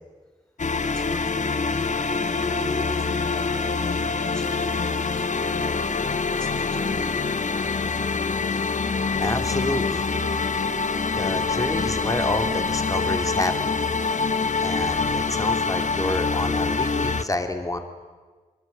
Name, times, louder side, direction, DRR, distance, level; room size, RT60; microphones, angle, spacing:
sound 1, 0.6-17.2, left 4 dB, 60° left, 1.2 m, -25 dB
voice 1, 0.7-6.0 6.3-8.2, equal, 10° left, -3 dB, 4.6 m, -39 dB
voice 2, 9.2-10.1 11.1-13.7 14.6-17.8, left 1 dB, 25° left, 6 dB, 2.9 m, -28 dB
23.0 x 23.0 x 8.9 m, 1.4 s
cardioid pair, 60°, 14 cm